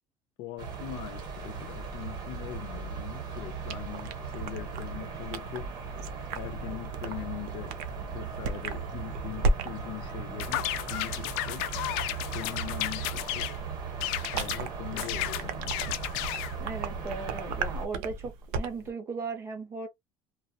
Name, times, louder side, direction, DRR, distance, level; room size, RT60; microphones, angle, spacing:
voice 1, 0.4-5.7 6.3-7.8 8.1-11.7 12.2-13.5 14.3-15.8, left 12 dB, 50° left, 0.7 m, -41 dB
sound 1, 0.6-17.9, right 5 dB, 40° right, 0.9 m, -38 dB
sound 2, 3.6-18.9, right 3 dB, 75° right, 0.6 m, -37 dB
sound 3, 10.4-13.6 14.0-14.6 15.0-16.5, left 15 dB, 80° left, 0.4 m, -33 dB
voice 2, 16.6-19.9, right 4 dB, 25° right, 0.6 m, -37 dB
2.8 x 2.0 x 2.3 m
cardioid pair, 175°, 10 cm